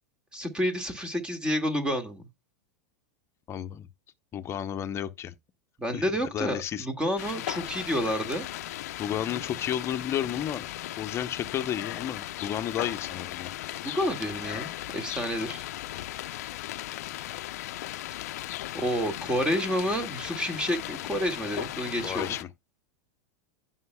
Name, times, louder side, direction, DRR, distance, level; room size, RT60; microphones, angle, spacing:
voice 1, 0.3-2.3 5.8-8.5 13.8-15.6 18.7-22.3, equal, 10° right, 2.0 m, -29 dB
voice 2, 3.5-3.9 4.3-5.3 5.9-6.0 6.3-6.9 9.0-10.7 11.0-13.5 22.0-22.5, left 10 dB, 30° left, 0.9 m, -32 dB
sound 1, 7.2-22.4, left 15 dB, 70° left, 0.6 m, -37 dB
15.0 x 5.8 x 2.3 m
hypercardioid pair, 110°, 9 cm